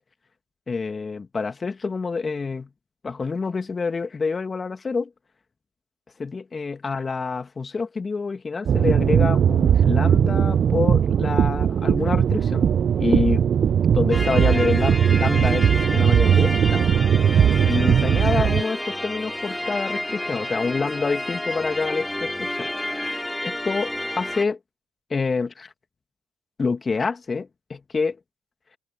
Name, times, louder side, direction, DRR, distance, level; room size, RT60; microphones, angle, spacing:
voice 1, 0.7-2.7 3.0-5.1 6.2-12.7 13.0-13.5 13.9-16.9 17.6-22.7 23.4-24.6 25.1-25.7 26.6-28.2, left 4 dB, 35° left, 2.3 m, -27 dB
sound 1, 8.7-18.6, right 8 dB, 60° right, 0.9 m, -19 dB
sound 2, 14.1-24.4, left 1 dB, 10° left, 3.4 m, -30 dB
hypercardioid pair, 55°, 0 cm